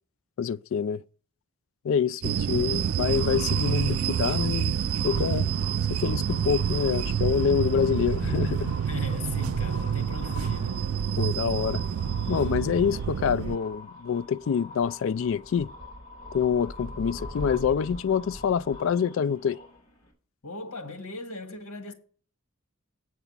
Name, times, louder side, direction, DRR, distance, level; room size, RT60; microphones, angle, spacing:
voice 1, 0.4-1.0 1.8-4.8 5.0-5.5 5.9-8.7 11.2-11.8 12.3-15.7 16.3-19.6, left 7 dB, 60° left, 0.3 m, -26 dB
sound 1, 2.2-13.6, right 8 dB, 75° right, 0.4 m, -28 dB
sound 2, 3.0-20.1, left 1 dB, 30° left, 3.5 m, -44 dB
voice 2, 8.8-10.8 20.4-21.9, left 3 dB, 80° left, 1.7 m, -38 dB
8.0 x 4.8 x 7.2 m
head